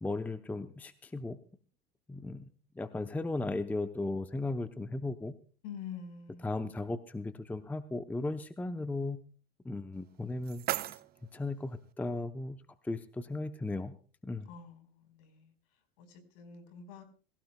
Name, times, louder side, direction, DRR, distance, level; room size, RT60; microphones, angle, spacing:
voice 1, 0.0-1.4 2.1-2.4 2.8-5.3 6.4-9.2 9.6-10.9 11.3-13.9 14.2-14.5, left 2 dB, 5° left, 10 dB, 0.7 m, -36 dB
voice 2, 5.6-6.5 14.4-15.5 16.0-17.0, left 7 dB, 65° left, 7 dB, 4.6 m, -46 dB
sound 1, 9.9-11.9, right 14 dB, 30° right, 0.6 m, -39 dB
23.5 x 16.5 x 2.3 m, 0.39 s
hypercardioid pair, 105°, 30 cm